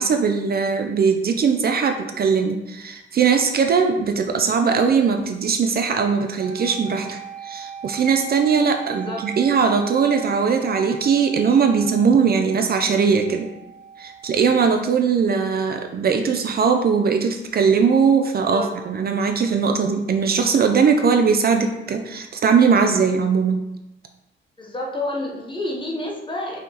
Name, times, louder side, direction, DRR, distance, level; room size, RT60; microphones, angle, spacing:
voice 1, 0.0-13.5 14.0-23.6, right 5 dB, 50° right, 5 dB, 0.4 m, -20 dB
sound 1, 6.4-14.4, right 10 dB, 85° right, 1.0 m, -38 dB
voice 2, 8.9-9.2 18.5-18.7 24.6-26.6, left 1 dB, 25° left, -1 dB, 0.7 m, -29 dB
5.1 x 3.7 x 2.8 m, 0.94 s
wide cardioid pair, 165°, 21 cm